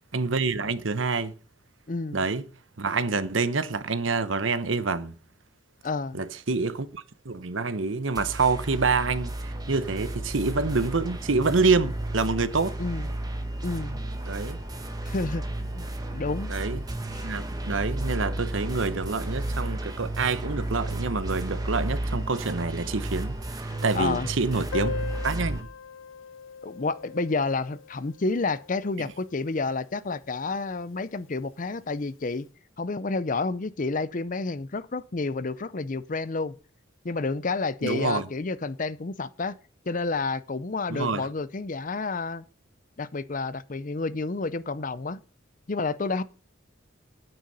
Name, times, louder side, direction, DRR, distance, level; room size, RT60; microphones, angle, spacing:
voice 1, 0.1-1.3 2.1-2.4 2.8-5.1 6.1-12.8 14.3-14.6 16.5-16.8 17.2-23.4 23.8-24.9 25.2-25.6 37.8-38.3 40.9-41.3, right 4 dB, 75° right, 1.0 m, -27 dB
voice 2, 1.9-2.2 5.8-6.2 12.8-13.1 13.6-14.0 15.0-16.5 17.1-17.2 23.7-24.3 26.6-32.5 32.8-36.5 37.0-39.5 39.9-42.4 43.0-45.2 45.7-46.2, left 3 dB, 40° left, 0.6 m, -30 dB
sound 1, 8.1-25.6, right 1 dB, 20° right, 1.4 m, -33 dB
Piano, 24.7-30.1 30.3-30.4 30.6-30.8 31.1-31.2 32.0-32.2, left 6 dB, 85° left, 0.9 m, -39 dB
9.4 x 8.9 x 5.4 m
head